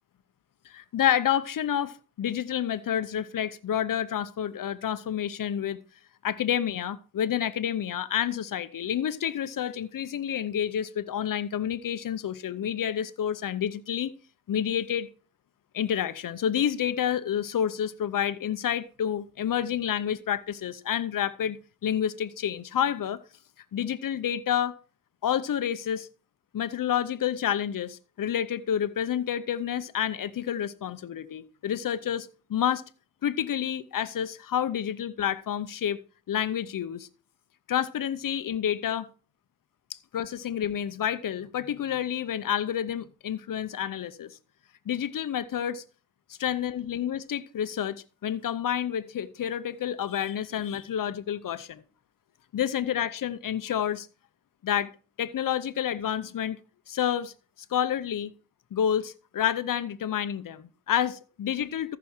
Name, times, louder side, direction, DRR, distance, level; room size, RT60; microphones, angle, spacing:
voice 1, 0.6-5.8 6.2-14.1 14.5-15.1 15.7-21.6 21.8-23.2 23.7-24.7 25.2-26.1 26.5-32.8 33.2-36.0 36.3-37.1 37.7-39.1 39.9-44.4 44.9-45.8 46.4-51.8 52.5-54.1 54.6-54.9 55.2-56.6 56.9-57.3 57.7-58.3 58.7-62.0, left 9 dB, 85° left, 0.7 m, -29 dB
14.0 x 6.0 x 4.4 m
cardioid pair, 60°, 32 cm